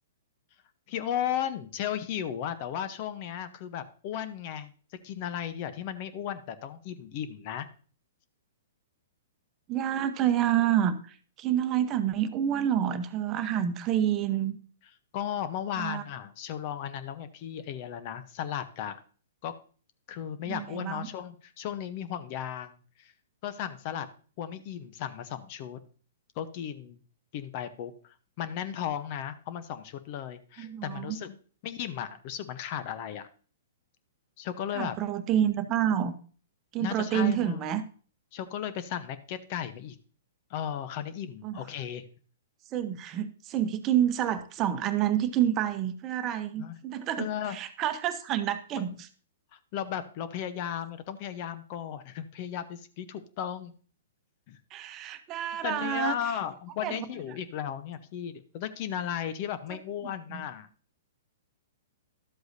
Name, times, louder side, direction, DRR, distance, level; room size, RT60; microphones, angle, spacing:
voice 1, 0.9-4.7 5.0-7.7 15.1-19.0 19.4-19.5 20.1-23.1 23.4-24.1 24.4-25.8 26.4-27.0 27.3-31.4 31.6-33.3 34.4-35.0 36.8-37.7 38.3-40.0 40.5-42.0 46.6-46.8 47.2-47.6 49.5-53.7 54.5-54.6 55.6-60.7, left 9 dB, 45° left, 12 dB, 0.8 m, -35 dB
voice 2, 9.7-14.6 15.8-16.0 20.4-21.1 30.6-31.2 34.7-36.1 36.7-37.8 41.4-41.6 42.7-49.1 54.7-56.2 56.8-57.0 60.0-60.4, right 10 dB, 30° right, 10 dB, 0.9 m, -28 dB
12.0 x 7.8 x 2.7 m, 0.41 s
hypercardioid pair, 125°, 0 cm